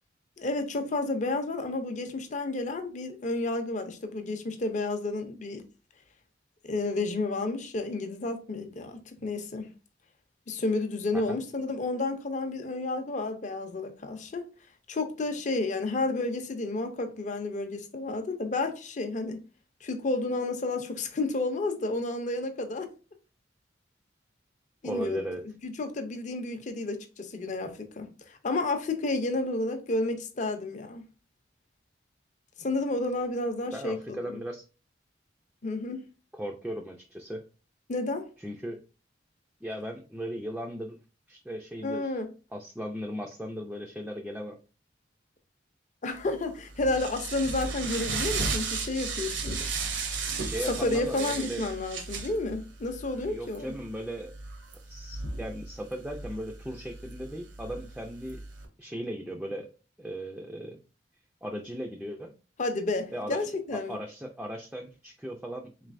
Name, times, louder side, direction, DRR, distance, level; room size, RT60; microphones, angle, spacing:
voice 1, 0.4-5.6 6.7-9.7 10.5-14.4 14.9-19.4 19.8-22.9 24.8-25.2 25.6-31.0 32.6-34.4 35.6-36.0 37.9-38.3 41.8-42.3 46.0-49.7 50.7-53.7 62.6-64.0, left 2 dB, 40° left, 0.5 m, -31 dB
voice 2, 24.8-25.4 33.7-34.6 36.3-37.4 38.4-38.8 39.6-41.0 41.3-42.1 42.5-44.6 50.4-51.7 53.1-54.3 54.9-58.4 58.8-59.7 60.0-60.8 61.4-62.3 63.1-63.4 63.7-65.9, equal, 5° right, 0.3 m, -37 dB
sound 1, 46.2-58.7, right 4 dB, 75° right, 0.8 m, -36 dB
3.9 x 3.2 x 2.5 m
head